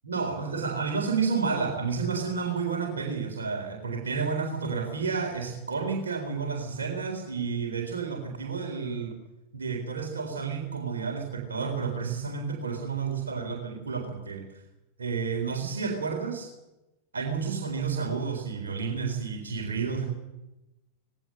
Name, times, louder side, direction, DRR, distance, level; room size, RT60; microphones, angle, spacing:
voice 1, 0.0-9.1 9.5-14.4 15.0-16.5 17.1-20.0, right 5 dB, 70° right, 2 dB, 4.0 m, -30 dB
19.5 x 18.0 x 7.8 m, 0.96 s
figure-of-eight pair, 90°, 0 cm